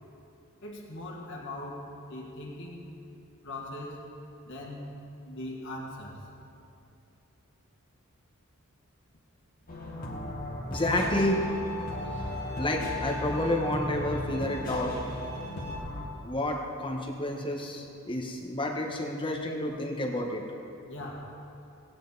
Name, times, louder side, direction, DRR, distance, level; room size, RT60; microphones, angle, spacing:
voice 1, 0.6-2.9 3.4-4.1 4.4-5.0 5.3-6.3 20.8-21.4, left 1 dB, 55° left, -3 dB, 1.8 m, -40 dB
sound 1, 9.7-16.1, left 1 dB, 40° left, 1.7 m, -36 dB
voice 2, 10.7-11.4 12.6-14.9 16.2-20.4, left 1 dB, 25° left, 1 dB, 1.3 m, -30 dB
Bowed string instrument, 10.7-15.8, left 4 dB, 85° right, 1.8 m, -42 dB
17.5 x 9.1 x 4.1 m, 2.7 s
head